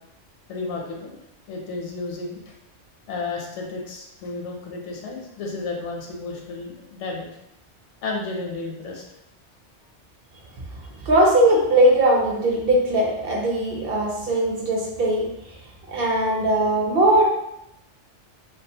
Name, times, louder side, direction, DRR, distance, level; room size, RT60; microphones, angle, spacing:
voice 1, 0.5-1.2 1.5-2.5 3.1-7.3 8.0-9.0, left 3 dB, 80° left, 0 dB, 0.9 m, -32 dB
voice 2, 11.1-15.3 15.9-17.2, right 1 dB, 60° right, -2 dB, 0.7 m, -19 dB
2.3 x 2.3 x 2.7 m, 0.83 s
omnidirectional pair, 1.2 m